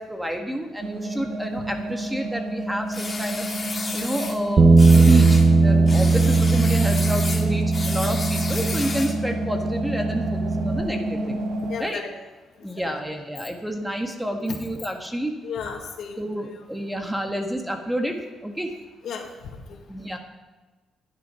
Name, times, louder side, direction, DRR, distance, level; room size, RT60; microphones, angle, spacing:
voice 1, 0.0-3.5 3.9-11.4 11.8-12.0 12.6-15.3 16.2-18.7 19.9-20.2, equal, 5° right, 3 dB, 1.8 m, -29 dB
sound 1, 0.8-11.8, right 1 dB, 70° right, 1.6 m, -30 dB
sound 2, 2.9-4.4 4.8-5.5 5.9-9.2, left 3 dB, 30° left, 2.3 m, -32 dB
Bass guitar, 4.6-10.8, right 3 dB, 35° right, 0.8 m, -19 dB
voice 2, 11.6-12.1 12.6-13.0 15.4-16.2 19.0-19.8, left 6 dB, 70° left, 2 dB, 2.2 m, -35 dB
12.0 x 10.5 x 5.8 m, 1.3 s
cardioid pair, 90°, 0 cm